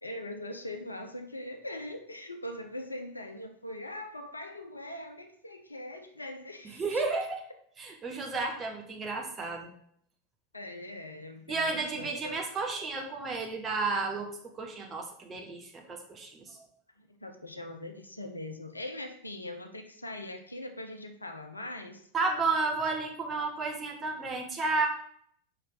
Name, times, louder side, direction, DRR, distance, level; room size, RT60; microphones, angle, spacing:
voice 1, 0.0-7.0 10.5-12.4 17.0-22.1, left 1 dB, 85° left, 5 dB, 0.8 m, -41 dB
voice 2, 6.6-7.4 7.8-9.7 11.5-16.7 22.1-24.9, right 3 dB, 25° right, 1 dB, 1.6 m, -32 dB
6.6 x 5.4 x 3.8 m, 0.63 s
figure-of-eight pair, 85°, 0 cm